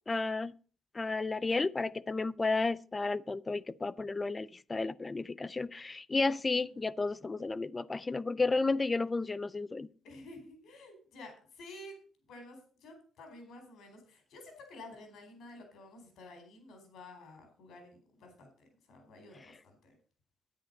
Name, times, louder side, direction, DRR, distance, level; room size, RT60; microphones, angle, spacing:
voice 1, 0.1-0.5 0.9-9.9, left 3 dB, 25° left, 0.5 m, -32 dB
voice 2, 6.5-6.9 10.0-12.0 12.3-18.5 18.9-20.0, left 2 dB, 75° left, 4.3 m, -51 dB
10.5 x 8.9 x 5.2 m
cardioid pair, 90°, 0 cm